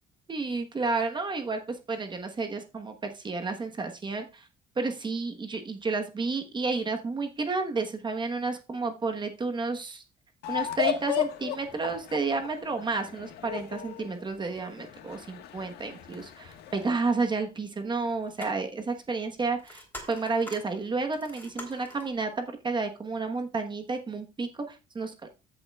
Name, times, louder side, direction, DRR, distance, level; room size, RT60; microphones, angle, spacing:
voice 1, 0.3-4.5 4.8-10.0 10.5-25.3, right 3 dB, 25° right, 5 dB, 1.2 m, -31 dB
sound 1, 10.4-16.9, left 11 dB, 80° left, 1.5 m, -35 dB
sound 2, 18.0-22.1, left 1 dB, 10° left, 3.4 m, -45 dB
14.0 x 7.5 x 2.4 m, 0.29 s
cardioid pair, 110°, 17 cm